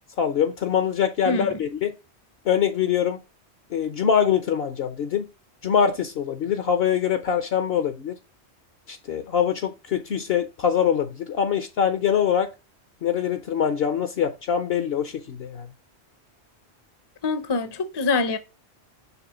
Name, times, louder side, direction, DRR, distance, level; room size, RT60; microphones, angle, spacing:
voice 1, 0.2-1.9 2.5-3.2 3.7-5.3 5.6-8.2 8.9-12.5 13.0-15.7, left 8 dB, 65° left, 0.9 m, -23 dB
voice 2, 1.3-1.6 17.2-18.4, left 3 dB, 30° left, 0.5 m, -25 dB
5.9 x 3.3 x 5.6 m
omnidirectional pair, 1.1 m